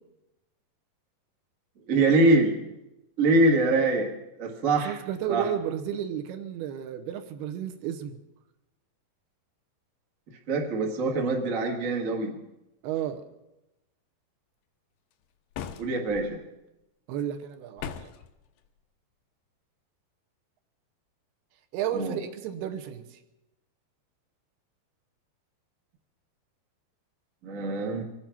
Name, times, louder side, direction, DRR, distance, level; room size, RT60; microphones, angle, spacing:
voice 1, 1.9-2.6 3.2-4.1 4.4-5.0 5.3-5.5 10.5-12.3 15.8-16.4 21.9-22.2 27.4-28.0, right 2 dB, 60° right, 0 dB, 0.8 m, -24 dB
voice 2, 4.9-8.2 12.8-13.2 17.1-18.1 21.7-23.2, right 9 dB, 80° right, 6 dB, 2.8 m, -32 dB
sound 1, 15.5-16.3 17.8-18.3, left 8 dB, 85° left, 2.8 m, -38 dB
24.5 x 8.8 x 5.9 m, 0.94 s
omnidirectional pair, 4.8 m